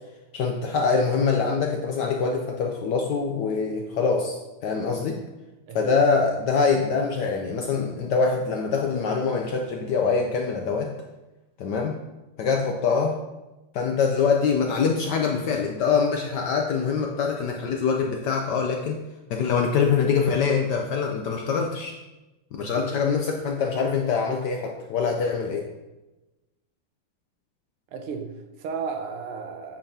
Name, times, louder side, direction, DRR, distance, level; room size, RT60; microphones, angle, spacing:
voice 1, 0.3-4.4 4.6-5.2 5.7-10.9 11.6-12.0 12.4-13.1 13.7-19.0 19.3-21.9 22.6-25.7, left 5 dB, 75° left, 1.0 m, -24 dB
voice 2, 22.6-22.9 27.9-29.8, right 5 dB, 85° right, 1.7 m, -34 dB
8.8 x 5.4 x 2.8 m
omnidirectional pair, 2.4 m